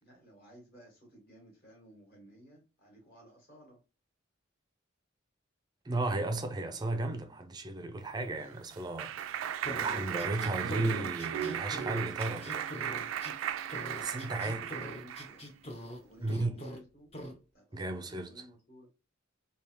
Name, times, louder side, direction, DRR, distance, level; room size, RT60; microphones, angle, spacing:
voice 1, 0.0-3.8 13.6-15.4 16.0-17.1 17.5-18.9, right 1 dB, 50° left, 2.0 m, -56 dB
voice 2, 5.8-9.4 9.8-12.7 14.0-14.7 16.2-16.6 17.7-18.5, right 2 dB, 20° right, 0.4 m, -35 dB
Clapping, 8.1-15.4, right 9 dB, 85° right, 0.3 m, -36 dB
sound 1, 9.6-13.3 13.7-16.0 16.3-16.8 17.1-17.3, equal, 30° left, 0.6 m, -42 dB
3.5 x 2.7 x 3.0 m
head